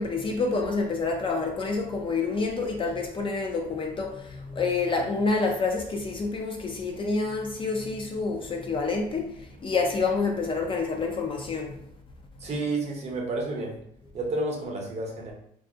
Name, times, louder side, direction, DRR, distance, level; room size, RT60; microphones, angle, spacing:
voice 1, 0.0-9.3 9.6-11.8, left 4 dB, 30° left, 0.3 m, -28 dB
voice 2, 12.4-13.8 14.1-15.3, right 2 dB, 40° right, 0.7 m, -30 dB
2.3 x 2.0 x 2.6 m
cardioid pair, 110°, 17 cm